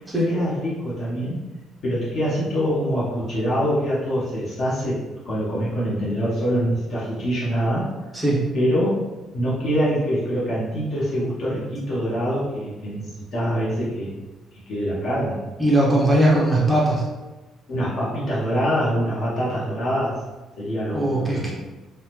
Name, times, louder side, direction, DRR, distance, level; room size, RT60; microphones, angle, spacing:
voice 1, 0.3-1.4 1.8-5.0 5.2-7.9 8.5-9.1 9.3-14.2 14.7-15.4 17.7-20.2 20.6-21.5, equal, 45° left, -8 dB, 0.7 m, -24 dB
voice 2, 15.6-17.0 20.9-21.5, right 1 dB, 5° right, -6 dB, 0.5 m, -19 dB
3.4 x 2.0 x 2.9 m, 1.1 s
cardioid pair, 170°, 0 cm